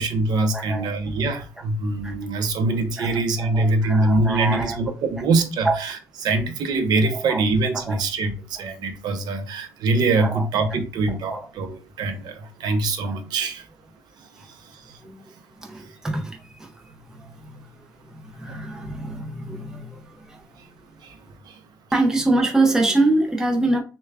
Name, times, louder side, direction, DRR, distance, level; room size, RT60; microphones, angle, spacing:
voice 1, 0.0-6.0 6.2-13.7 14.4-15.0 18.5-18.6 21.0-21.2 21.5-21.6, right 3 dB, 60° right, 0.7 m, -24 dB
voice 2, 0.5-0.9 2.0-2.1 3.0-4.8 5.6-5.8 7.1-7.4 7.7-8.0 10.2-10.4 11.3-11.4 14.8-15.2 15.6-20.4 21.9-23.8, right 2 dB, 5° right, 0.6 m, -25 dB
6.4 x 2.3 x 2.4 m
cardioid pair, 155°, 8 cm